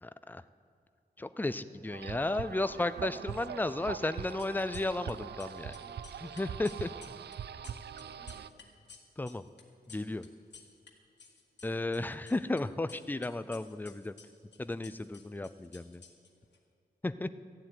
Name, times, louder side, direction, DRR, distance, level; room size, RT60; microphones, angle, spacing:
voice 1, 0.0-0.4 1.2-5.7 6.2-7.1 9.2-9.4 9.9-10.2 11.6-14.2 14.6-16.0 17.0-17.3, left 2 dB, 10° left, 13 dB, 0.4 m, -34 dB
sound 1, 1.9-8.5, right 8 dB, 75° right, 0.4 m, -42 dB
sound 2, 4.2-5.1 5.4-10.9 11.2-12.6 12.9-16.6, left 5 dB, 85° left, 1.8 m, -55 dB
voice 2, 7.5-8.6, equal, 45° right, -1 dB, 2.9 m, -59 dB
14.5 x 7.7 x 9.3 m, 2.4 s
wide cardioid pair, 135°, 17 cm